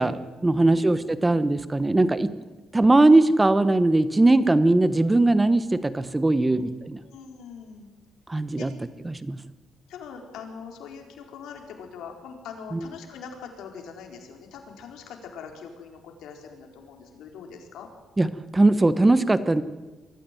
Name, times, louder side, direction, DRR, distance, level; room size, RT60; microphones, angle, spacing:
voice 1, 0.0-2.3 2.7-7.0 8.3-8.7 9.0-9.4 12.7-12.8 18.2-18.3 18.5-19.6, right 2 dB, 15° right, 13 dB, 1.1 m, -20 dB
voice 2, 0.5-1.3 6.4-6.6 7.0-7.9 8.6-8.7 9.9-17.9, left 6 dB, 90° left, 3 dB, 4.3 m, -42 dB
23.5 x 14.0 x 9.2 m, 1.2 s
cardioid pair, 115°, 0 cm